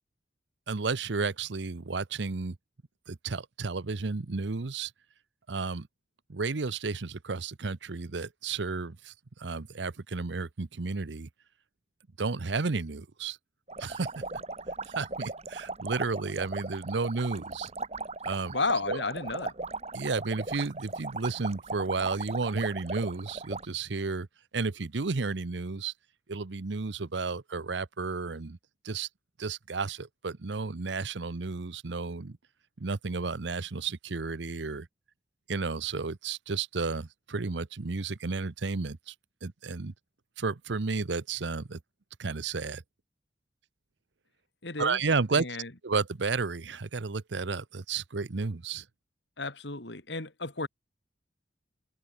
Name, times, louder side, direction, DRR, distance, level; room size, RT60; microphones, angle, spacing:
voice 1, 0.7-2.6 3.1-4.9 5.5-5.9 6.3-9.1 9.4-11.3 12.2-13.4 13.8-14.1 14.9-17.7 18.2-18.6 18.9-19.0 19.9-24.3 24.5-25.9 26.3-28.6 28.8-29.1 29.4-32.4 32.8-34.9 35.5-39.1 39.4-39.9 40.4-41.8 42.2-42.8 44.8-45.5 45.8-48.8, right 4 dB, 75° right, 0.8 m, -32 dB
sound 1, 13.7-23.7, right 3 dB, 35° right, 3.3 m, -38 dB
voice 2, 18.5-19.5 44.6-45.0 45.3-45.7 49.4-50.7, left 3 dB, 70° left, 3.2 m, -32 dB
head